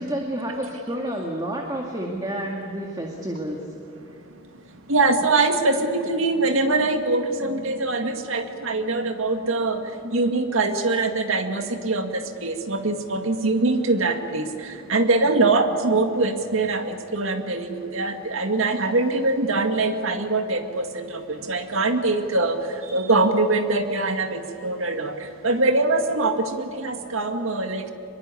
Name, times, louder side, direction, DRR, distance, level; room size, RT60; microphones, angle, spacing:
voice 1, 0.0-3.6, right 1 dB, 20° right, 0 dB, 2.1 m, -29 dB
voice 2, 4.3-27.9, right 3 dB, 75° right, 6 dB, 2.1 m, -23 dB
24.5 x 22.5 x 8.5 m, 2.8 s
head